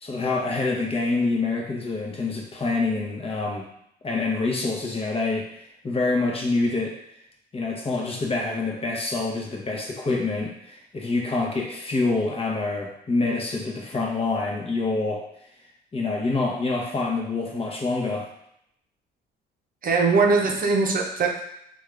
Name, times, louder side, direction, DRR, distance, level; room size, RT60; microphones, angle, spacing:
voice 1, 0.0-3.7 4.0-5.5 5.8-6.9 7.5-15.2 15.9-18.3, left 3 dB, 30° left, -1 dB, 0.9 m, -26 dB
voice 2, 19.8-21.4, right 4 dB, 45° right, 1 dB, 0.7 m, -21 dB
3.5 x 2.4 x 3.3 m, 0.75 s
supercardioid pair, 65°, 20 cm